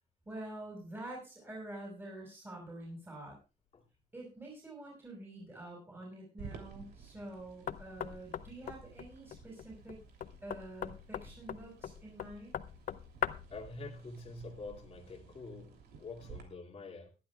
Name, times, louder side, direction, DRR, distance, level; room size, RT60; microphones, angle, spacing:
voice 1, 0.3-3.4 4.1-10.0 10.4-12.6, right 1 dB, 15° right, 5.6 m, -47 dB
sound 1, 6.4-16.4, right 6 dB, 80° right, 3.0 m, -54 dB
Knock, 7.7-13.6, left 10 dB, 55° left, 0.6 m, -41 dB
voice 2, 13.5-17.1, left 3 dB, 35° left, 2.5 m, -46 dB
21.5 x 11.5 x 2.3 m
cardioid pair, 135°, 17 cm